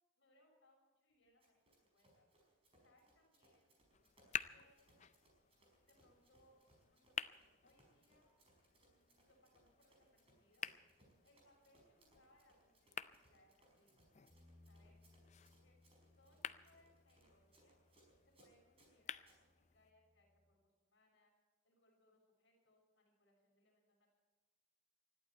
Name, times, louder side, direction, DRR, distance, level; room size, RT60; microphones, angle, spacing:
voice 1, 0.1-3.7 4.4-5.0 5.8-8.3 8.9-10.7 10.9-14.0 14.7-15.1 15.6-15.8 16.1-17.8 18.2-21.3 21.6-24.1, left 1 dB, 60° left, 0 dB, 6.4 m, -74 dB
Run, 1.4-19.4, right 1 dB, 30° right, 5.0 m, -73 dB
sound 1, 3.9-19.9, left 8 dB, 35° left, 0.4 m, -52 dB
Bass guitar, 14.3-20.5, left 2 dB, 5° left, 3.9 m, -70 dB
20.5 x 14.0 x 4.5 m, 1.3 s
head